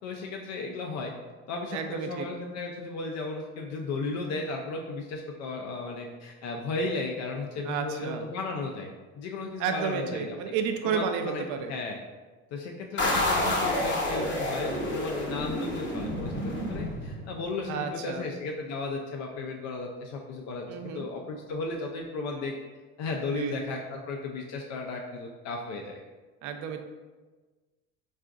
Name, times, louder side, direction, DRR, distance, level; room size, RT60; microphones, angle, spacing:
voice 1, 0.0-1.1 1.5-10.4 10.8-11.4 11.7-12.0 12.5-22.5 23.0-26.0, left 3 dB, 55° left, 1 dB, 0.4 m, -35 dB
voice 2, 1.7-2.3 7.6-8.2 9.6-11.7 17.7-18.3 20.7-21.1 23.3-23.5 26.4-26.8, right 6 dB, 60° right, 6 dB, 0.5 m, -31 dB
sound 1, 13.0-17.5, left 1 dB, 35° left, 0.9 m, -29 dB
3.6 x 2.4 x 2.3 m, 1.3 s
supercardioid pair, 105°, 33 cm